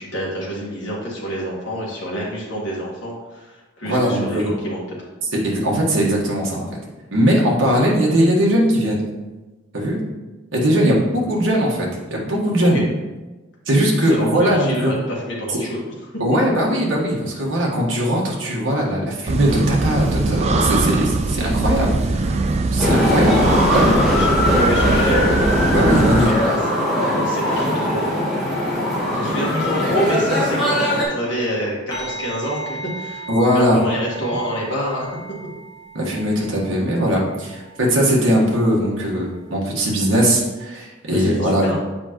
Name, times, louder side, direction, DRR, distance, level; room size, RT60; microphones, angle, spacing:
voice 1, 0.0-4.8 12.7-12.9 14.0-15.8 24.1-25.4 26.2-26.5 26.9-28.1 29.1-35.1 41.1-41.8, equal, 60° left, -5 dB, 1.7 m, -27 dB
voice 2, 3.8-4.5 5.4-6.7 7.1-9.0 9.7-10.0 10.5-12.8 13.7-14.9 15.5-15.6 16.2-22.4 22.7-23.5 23.7-24.0 25.7-26.3 33.3-33.8 35.9-41.7, equal, 80° right, -3 dB, 1.5 m, -19 dB
sound 1, 19.3-26.3, right 3 dB, 30° right, 0.3 m, -21 dB
sound 2, 22.8-31.0, left 1 dB, ahead, 1.4 m, -20 dB
sound 3, 31.9-40.6, right 2 dB, 20° left, 1.5 m, -38 dB
7.3 x 4.9 x 3.0 m, 1.2 s
head